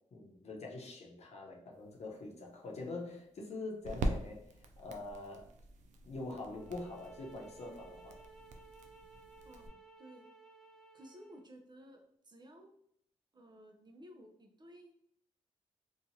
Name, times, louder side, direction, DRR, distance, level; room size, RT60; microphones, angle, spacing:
voice 1, 0.1-5.5 6.0-8.2, left 2 dB, 60° left, -1 dB, 0.8 m, -44 dB
sound 1, 1.8-9.7, right 1 dB, 90° right, 0.4 m, -43 dB
sound 2, 6.5-11.5, right 3 dB, 5° left, 0.4 m, -57 dB
voice 2, 9.4-10.3 10.9-12.7 13.3-14.9, equal, 35° right, 3 dB, 0.6 m, -56 dB
2.9 x 2.4 x 2.6 m, 0.68 s
cardioid pair, 75°, 12 cm